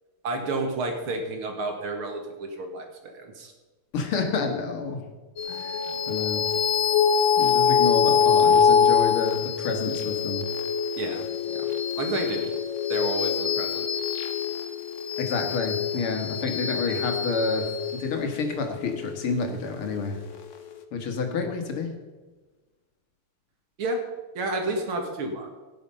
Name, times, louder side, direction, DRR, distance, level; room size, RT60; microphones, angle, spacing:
voice 1, 0.2-3.5 11.0-11.7 12.0-12.5 12.9-13.9 23.8-24.0 24.3-25.5, right 2 dB, 80° right, 3 dB, 2.6 m, -31 dB
voice 2, 3.9-5.0 5.5-6.5 7.4-10.4 15.2-17.7 18.0-20.2 20.9-21.9, left 4 dB, 85° left, 5 dB, 2.5 m, -29 dB
sound 1, 5.4-20.1, left 7 dB, 50° left, 1.0 m, -24 dB
17.0 x 7.0 x 5.4 m, 1.3 s
omnidirectional pair, 2.3 m